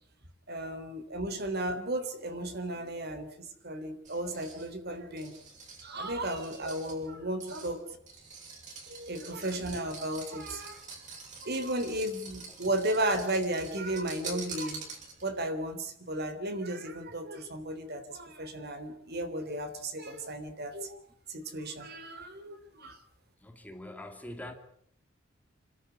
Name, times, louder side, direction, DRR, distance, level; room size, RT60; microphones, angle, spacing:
voice 1, 0.5-5.3 5.8-8.0 8.9-10.8 11.4-14.8 15.2-21.0 21.3-23.0, right 1 dB, 55° right, 3.5 m, -34 dB
sound 1, 4.0-15.4, right 4 dB, 40° right, 7.5 m, -47 dB
voice 2, 23.4-24.5, left 1 dB, 10° left, 2.5 m, -44 dB
27.5 x 13.5 x 9.8 m
head